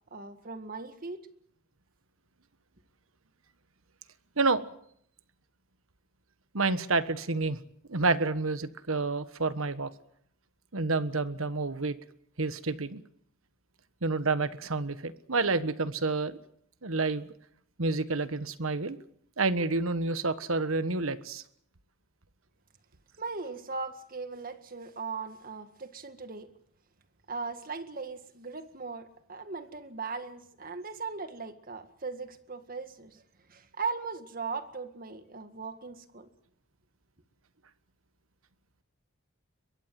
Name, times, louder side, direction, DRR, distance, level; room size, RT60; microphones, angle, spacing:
voice 1, 0.1-1.2 23.2-26.5 27.3-33.2 33.5-36.3, right 4 dB, 45° right, 1.9 m, -38 dB
voice 2, 6.5-7.6 7.9-9.9 10.7-12.0 12.4-13.0 14.0-16.4 16.8-17.3 17.8-19.0 19.4-21.4, right 3 dB, 80° right, 1.4 m, -29 dB
22.5 x 22.5 x 7.7 m
head